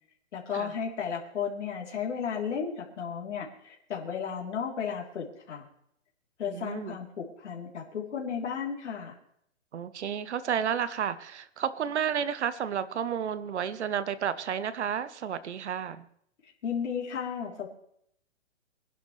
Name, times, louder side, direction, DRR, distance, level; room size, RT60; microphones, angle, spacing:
voice 1, 0.3-5.7 6.4-9.2 16.4-17.7, left 7 dB, 70° left, -2 dB, 3.7 m, -34 dB
voice 2, 6.5-7.0 9.7-16.1, right 8 dB, 65° right, 14 dB, 1.1 m, -31 dB
24.0 x 11.0 x 3.3 m, 0.70 s
hypercardioid pair, 155°, 37 cm